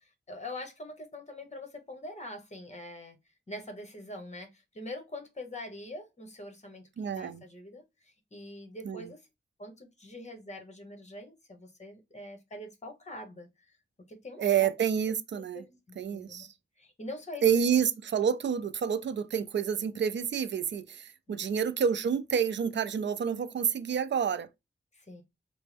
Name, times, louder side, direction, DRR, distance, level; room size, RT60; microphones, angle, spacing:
voice 1, 0.0-3.2 3.5-9.3 9.6-13.7 14.1-14.7 15.5-16.5 16.8-17.8 21.3-21.6 24.9-25.2, left 1 dB, 40° left, 1.1 m, -44 dB
voice 2, 7.0-7.4 8.8-9.1 14.4-15.6 16.0-16.5 17.4-24.5, right 7 dB, 75° right, 0.4 m, -28 dB
4.3 x 2.0 x 3.2 m
wide cardioid pair, 90°, 19 cm